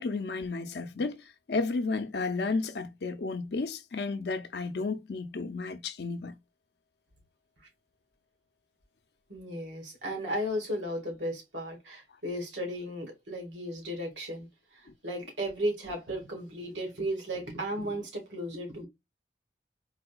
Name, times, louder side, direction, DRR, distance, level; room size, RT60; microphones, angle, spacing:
voice 1, 0.0-6.4, left 3 dB, 65° left, 0.5 m, -32 dB
voice 2, 9.3-18.9, equal, 85° right, 1.7 m, -35 dB
4.1 x 2.8 x 2.2 m
head